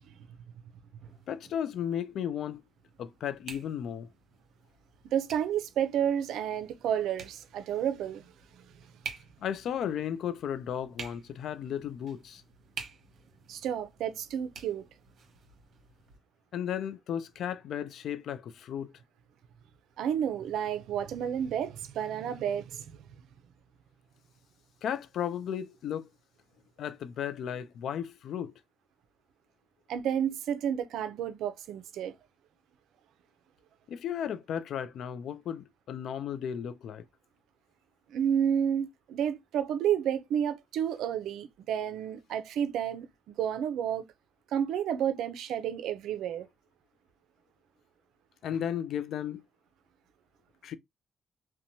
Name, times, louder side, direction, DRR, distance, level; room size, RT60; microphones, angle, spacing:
sound 1, 1.0-16.2, right 5 dB, 65° right, 0.9 m, -50 dB
voice 1, 1.3-2.6 3.0-4.1 9.4-12.4 16.5-18.9 24.8-26.1 26.8-28.5 33.9-37.0 48.4-49.4 50.6-50.8, left 9 dB, 70° left, 0.3 m, -34 dB
voice 2, 5.1-8.2 13.5-14.8 20.0-23.0 29.9-32.1 38.1-44.0 44.5-46.5, right 9 dB, 80° right, 0.4 m, -31 dB
2.9 x 2.1 x 2.6 m
cardioid pair, 90°, 0 cm